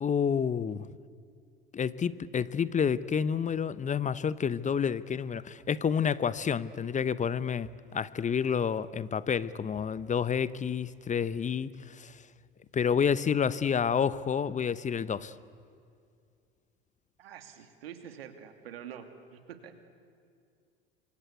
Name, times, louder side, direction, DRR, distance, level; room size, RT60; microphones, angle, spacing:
voice 1, 0.0-0.9 1.7-12.1 12.7-15.3, left 7 dB, 25° left, 17 dB, 0.8 m, -29 dB
voice 2, 17.2-19.9, right 8 dB, 80° right, 7 dB, 2.5 m, -46 dB
27.5 x 24.5 x 8.3 m, 2.3 s
hypercardioid pair, 75°, 29 cm